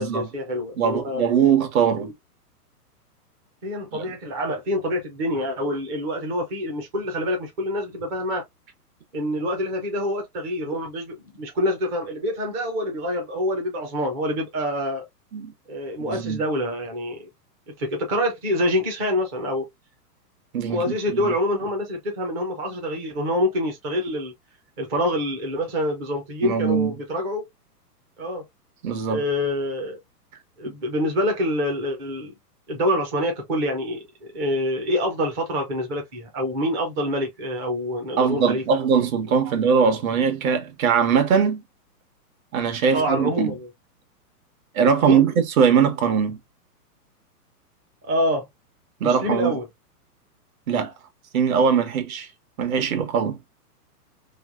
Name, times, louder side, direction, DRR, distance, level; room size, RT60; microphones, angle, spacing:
voice 1, 0.0-1.2 2.0-2.1 3.6-8.4 9.1-15.1 15.7-17.3 17.8-19.7 20.7-24.3 24.8-27.4 28.2-28.4 29.1-30.0 30.6-32.3 32.7-38.6 42.9-43.7 45.0-45.2 48.0-48.5 49.0-49.6, left 1 dB, 15° right, 0.4 m, -26 dB
voice 2, 0.8-2.1 3.9-4.0 15.3-15.5 16.0-16.4 20.5-21.3 26.4-26.9 28.8-29.2 38.2-41.6 42.5-43.5 44.7-46.4 49.0-49.6 50.7-50.9 51.3-52.3 52.6-53.4, right 6 dB, 60° right, 1.2 m, -21 dB
3.2 x 2.9 x 2.4 m
hypercardioid pair, 135°, 47 cm